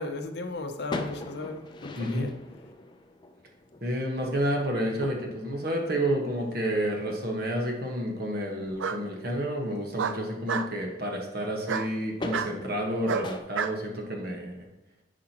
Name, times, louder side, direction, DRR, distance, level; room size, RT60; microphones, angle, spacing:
voice 1, 0.0-2.3, left 2 dB, 60° left, 0.7 m, -36 dB
sound 1, 0.9-11.1 11.4-13.4, left 2 dB, 25° left, 0.5 m, -43 dB
voice 2, 2.0-2.3 3.8-14.7, equal, 55° right, 1.3 m, -30 dB
Bark, 6.6-7.3 8.8-9.0 10.0-10.7 11.6-11.9 12.3-12.5 13.1-13.8, right 6 dB, 90° right, 0.4 m, -30 dB
10.0 x 4.9 x 3.0 m
head